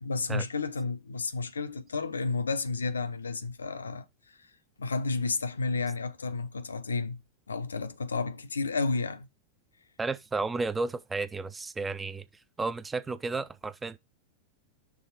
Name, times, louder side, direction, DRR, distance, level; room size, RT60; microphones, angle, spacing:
voice 1, 0.0-4.0 4.8-7.2 7.5-9.3, left 4 dB, 75° left, 0.6 m, -31 dB
voice 2, 10.0-12.2 12.6-14.0, right 3 dB, 15° right, 0.5 m, -32 dB
6.2 x 3.7 x 5.2 m
figure-of-eight pair, 90°, 0 cm